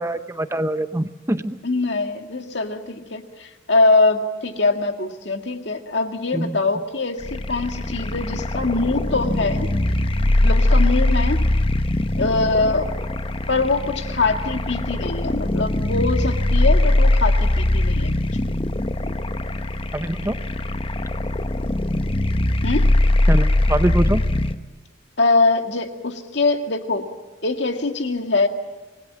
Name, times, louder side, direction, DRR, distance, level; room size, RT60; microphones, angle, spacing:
voice 1, 0.0-1.6 6.3-6.6 19.9-20.4 23.3-24.2, right 1 dB, 15° right, 10 dB, 0.7 m, -23 dB
voice 2, 1.6-9.7 10.4-11.5 12.2-12.9 13.5-18.2 18.5-18.6 22.6-22.9 25.2-27.1 27.4-28.5, left 3 dB, 65° left, 5 dB, 2.0 m, -22 dB
sound 1, 7.2-24.5, left 1 dB, 30° left, 0.9 m, -21 dB
27.0 x 20.0 x 7.4 m, 1.2 s
head